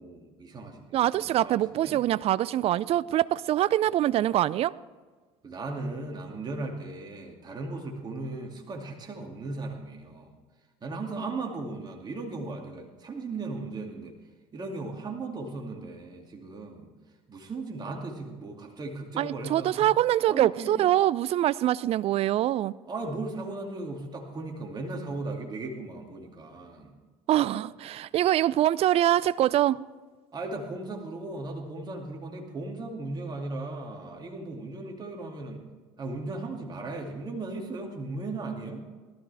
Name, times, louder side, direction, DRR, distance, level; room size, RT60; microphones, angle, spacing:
voice 1, 0.0-2.0 5.4-10.3 10.8-14.1 14.5-16.9 17.3-19.9 20.3-20.8 22.9-26.9 30.3-35.6 36.0-38.8, right 3 dB, 30° right, 1 dB, 2.4 m, -37 dB
voice 2, 0.9-4.7 19.2-22.7 27.3-29.8, right 13 dB, 50° right, 20 dB, 0.5 m, -24 dB
18.0 x 13.0 x 3.4 m, 1.4 s
hypercardioid pair, 70°, 13 cm